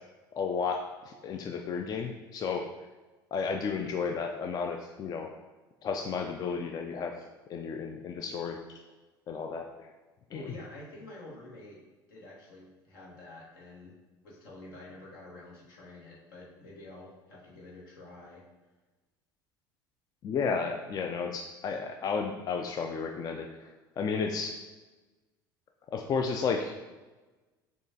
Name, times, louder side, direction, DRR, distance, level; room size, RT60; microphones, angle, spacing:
voice 1, 0.4-2.6 3.3-5.3 5.8-7.1 7.5-8.8 9.3-9.9 10.3-10.4 20.2-24.6 25.9-26.7, left 5 dB, 35° left, 3 dB, 0.3 m, -33 dB
voice 2, 10.3-11.8 12.1-13.9 14.2-18.4, left 2 dB, 75° left, -4 dB, 1.3 m, -48 dB
6.1 x 2.4 x 2.7 m, 1.2 s
hypercardioid pair, 70°, 12 cm